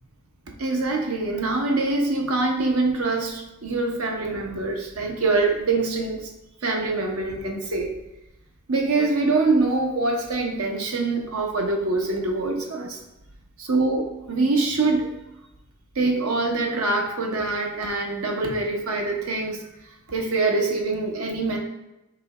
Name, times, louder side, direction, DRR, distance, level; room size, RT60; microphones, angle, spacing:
voice 1, 0.6-6.3 6.6-7.9 8.7-13.0 13.6-15.1 15.9-19.6 20.1-21.6, right 3 dB, 75° right, 2 dB, 0.9 m, -24 dB
3.4 x 3.1 x 4.8 m, 0.94 s
head